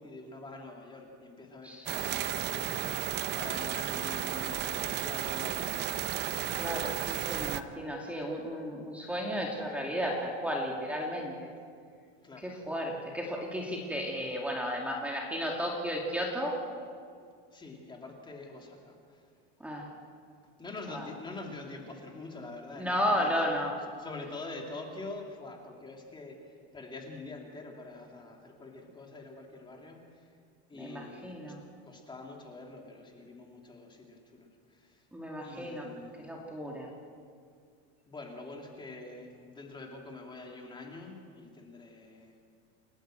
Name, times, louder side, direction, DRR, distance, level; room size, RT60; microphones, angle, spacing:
voice 1, 0.0-5.9 12.2-12.5 17.5-19.3 20.6-23.4 23.8-30.4 30.7-31.6 31.8-35.1 35.4-36.4 38.1-42.5, left 3 dB, 15° left, 1 dB, 2.8 m, -45 dB
sound 1, 1.9-7.6, right 12 dB, 35° right, 0.7 m, -33 dB
voice 2, 6.5-11.5 12.4-16.6 19.6-19.9 20.9-21.1 22.8-23.7 30.7-31.6 35.1-35.9 36.2-36.9, equal, 5° right, -1 dB, 2.4 m, -34 dB
29.0 x 11.5 x 7.7 m, 2.2 s
supercardioid pair, 145°, 33 cm